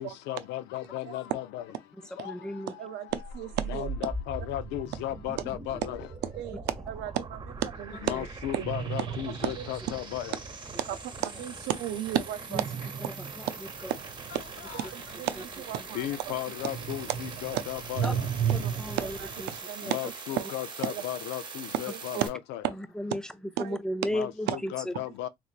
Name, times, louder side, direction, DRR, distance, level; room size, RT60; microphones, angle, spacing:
voice 1, 0.0-1.7 2.1-3.3 3.6-6.1 8.0-10.4 14.3-14.9 15.9-18.3 19.8-22.6 24.1-25.3, left 13 dB, 90° left, 0.5 m, -36 dB
voice 2, 2.2-2.7 12.5-12.6 13.0-13.5 13.8-13.9 18.0-18.1 18.5-19.5 19.8-19.9 22.2-22.3 22.8-23.2 23.6-24.9, left 1 dB, 5° left, 0.4 m, -34 dB
voice 3, 2.8-3.9 6.4-6.6 6.9-8.1 8.5-8.6 9.4-9.7 10.9-11.0 11.2-12.6 13.4-13.5 13.9-14.0 14.3-14.4 14.7-16.3 17.5-17.6 18.5-18.7 19.0-20.5 20.8-21.0 21.9-22.2 23.6-23.8 24.5-24.6, right 12 dB, 90° right, 0.5 m, -33 dB
sound 1, 3.1-22.3, right 4 dB, 25° right, 1.1 m, -42 dB
sound 2, 8.6-10.3 12.5-16.3 16.6-19.6, right 8 dB, 45° right, 0.6 m, -35 dB
3.7 x 3.1 x 2.4 m
cardioid pair, 110°, 17 cm